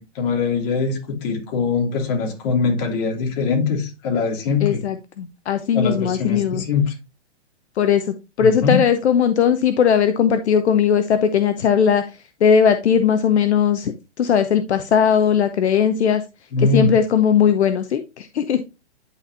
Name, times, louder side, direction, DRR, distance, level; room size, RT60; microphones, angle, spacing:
voice 1, 0.0-4.8 5.7-6.9 8.4-8.8 16.5-16.9, left 4 dB, 35° left, 2.9 m, -22 dB
voice 2, 4.6-6.6 7.8-12.0 12.4-16.2 16.6-18.6, left 7 dB, 70° left, 0.9 m, -18 dB
11.0 x 4.4 x 2.7 m
hypercardioid pair, 150°, 34 cm